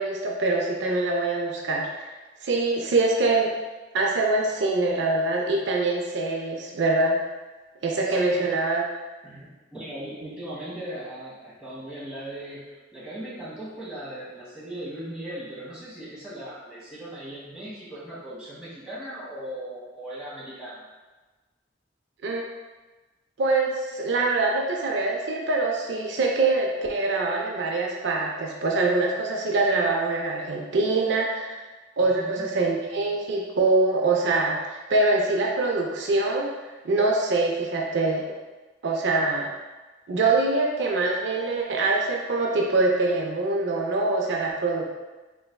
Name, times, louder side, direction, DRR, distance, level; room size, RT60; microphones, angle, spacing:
voice 1, 0.0-2.1 2.4-3.5 3.9-7.2 7.8-8.8 22.2-22.4 23.4-31.6 32.0-36.5 36.8-38.2 38.8-39.5 40.1-44.8, right 3 dB, 70° right, -1 dB, 0.4 m, -24 dB
voice 2, 8.0-8.5 9.2-20.9 32.1-32.4, right 1 dB, 5° right, -10 dB, 1.3 m, -38 dB
4.0 x 3.3 x 2.2 m, 1.2 s
head